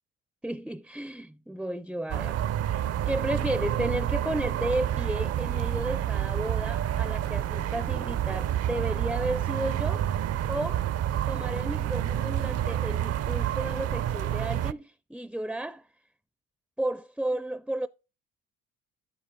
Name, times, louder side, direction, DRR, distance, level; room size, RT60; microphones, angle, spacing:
voice 1, 0.4-2.4 3.1-10.1 10.5-10.8 11.3-15.9 16.8-17.9, right 1 dB, ahead, 0.4 m, -33 dB
sound 1, 2.1-14.7, right 11 dB, 55° right, 0.6 m, -29 dB
sound 2, 2.4-4.9 5.3-6.0 6.4-9.8, right 11 dB, 90° right, 2.1 m, -54 dB
10.5 x 7.6 x 3.5 m
supercardioid pair, 75°, 31 cm